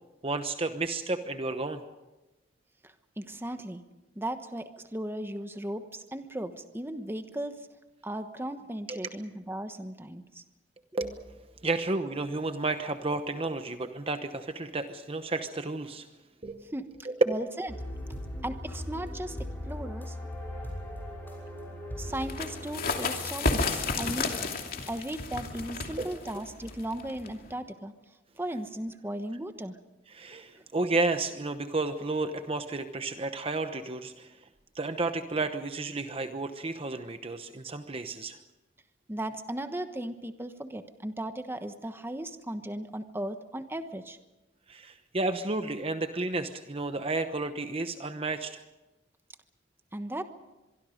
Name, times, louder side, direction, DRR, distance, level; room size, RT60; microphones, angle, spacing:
voice 1, 0.2-1.8 8.9-9.0 10.9-16.1 16.4-16.7 17.0-17.1 26.0-26.2 30.1-34.3 34.7-38.4 44.7-48.6, right 3 dB, 30° right, 8 dB, 1.0 m, -32 dB
voice 2, 2.8-3.8 4.2-7.6 8.0-10.4 16.7-17.7 18.4-19.4 19.6-20.2 22.0-24.3 24.9-27.9 28.4-29.8 39.1-44.2 49.9-50.2, right 1 dB, 15° right, 8 dB, 1.2 m, -36 dB
sound 1, 17.7-23.8, left 1 dB, 10° left, 5.8 m, -39 dB
sound 2, 22.2-27.5, left 3 dB, 50° left, 2.7 m, -32 dB
24.5 x 23.5 x 5.2 m, 1.1 s
head